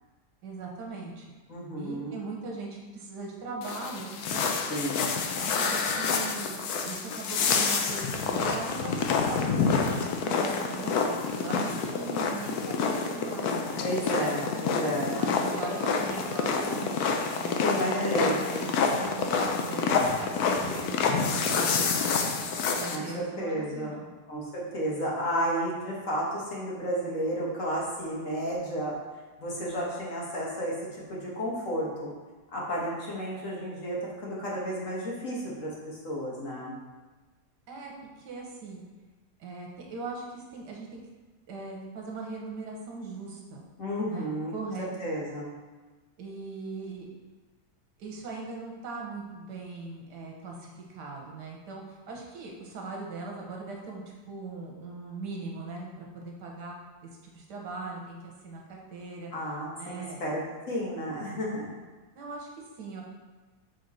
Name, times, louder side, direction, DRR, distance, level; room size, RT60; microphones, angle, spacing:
voice 1, 0.4-1.4 1.8-4.5 5.1-13.9 15.2-17.0 17.4-22.4 22.8-24.0 37.7-38.8 39.4-41.0 41.5-43.6 44.0-45.1 46.2-47.1 48.0-56.8 57.2-59.3 59.8-60.2 62.1-63.0, right 3 dB, 85° right, -1 dB, 1.6 m, -40 dB
voice 2, 1.5-2.2 4.7-5.1 13.8-15.1 17.6-18.6 22.9-24.0 24.3-28.9 29.4-30.7 31.1-32.1 32.5-36.7 43.8-44.5 45.0-45.5 59.3-60.4 60.7-61.7, equal, 50° left, -4 dB, 1.6 m, -32 dB
sound 1, 3.6-23.0, left 5 dB, 70° left, 1.1 m, -28 dB
6.8 x 3.7 x 4.1 m, 1.3 s
omnidirectional pair, 1.8 m